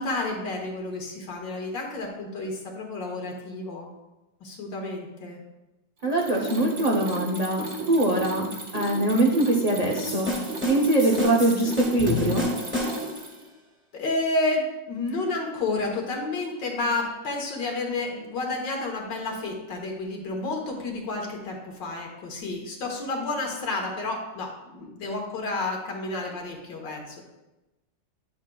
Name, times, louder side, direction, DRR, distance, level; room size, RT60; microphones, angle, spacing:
voice 1, 0.0-3.9 4.4-5.4 13.9-27.2, left 2 dB, 75° left, 0 dB, 1.8 m, -30 dB
Mechanisms, 6.0-13.5, right 2 dB, 45° right, 1.5 m, -35 dB
voice 2, 6.0-8.5 8.7-10.3 10.7-12.5, right 1 dB, 75° right, -1 dB, 0.3 m, -23 dB
sound 1, 10.1-13.3, left 2 dB, 5° right, 1.2 m, -30 dB
8.9 x 7.2 x 2.3 m, 0.99 s
omnidirectional pair, 2.0 m